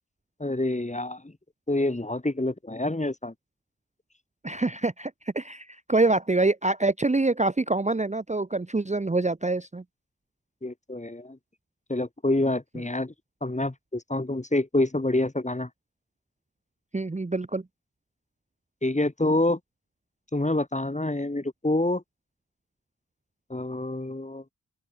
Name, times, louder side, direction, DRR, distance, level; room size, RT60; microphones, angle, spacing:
voice 1, 0.4-1.3 1.7-3.3 10.6-11.4 11.9-13.1 13.4-15.7 18.8-19.6 20.3-22.0 23.5-24.4, left 2 dB, 20° left, 1.5 m, -27 dB
voice 2, 4.4-9.8 16.9-17.6, right 2 dB, 20° right, 0.7 m, -25 dB
open air
cardioid pair, 45°, 37 cm